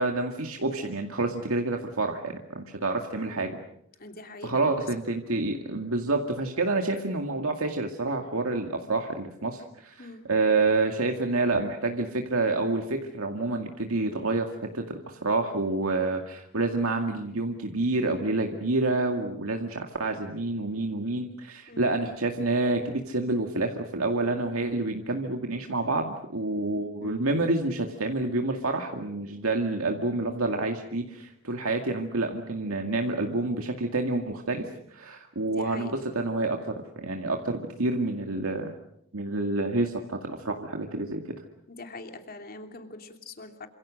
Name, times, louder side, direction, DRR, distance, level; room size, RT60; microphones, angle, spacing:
voice 1, 0.0-3.6 4.4-38.7 39.1-41.2, right 2 dB, 90° right, 3 dB, 2.2 m, -28 dB
voice 2, 4.0-4.9 10.0-10.3 21.7-21.9 27.0-27.2 35.4-35.9 41.7-43.7, left 2 dB, 45° left, 5 dB, 3.0 m, -43 dB
28.5 x 26.5 x 6.5 m, 0.77 s
head